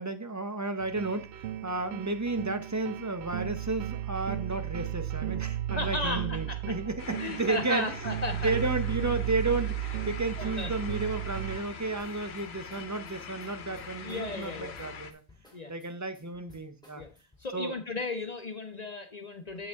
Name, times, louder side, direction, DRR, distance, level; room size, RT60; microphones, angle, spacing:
voice 1, 0.0-7.9 8.4-15.2 15.7-17.0 17.5-17.7, right 3 dB, 20° right, 8 dB, 0.7 m, -32 dB
sound 1, 0.8-11.6, right 12 dB, 85° right, 0.9 m, -34 dB
voice 2, 5.8-6.7 7.2-8.5 10.4-10.7 14.0-14.7 15.5-15.7 17.0-17.1 17.4-19.7, left 3 dB, 45° left, 6 dB, 0.8 m, -35 dB
sound 2, 7.0-15.1, left 5 dB, 75° left, 1.1 m, -43 dB
sound 3, 12.0-17.5, left 2 dB, 5° left, 2.4 m, -58 dB
8.0 x 7.7 x 3.5 m, 0.33 s
omnidirectional pair, 1.1 m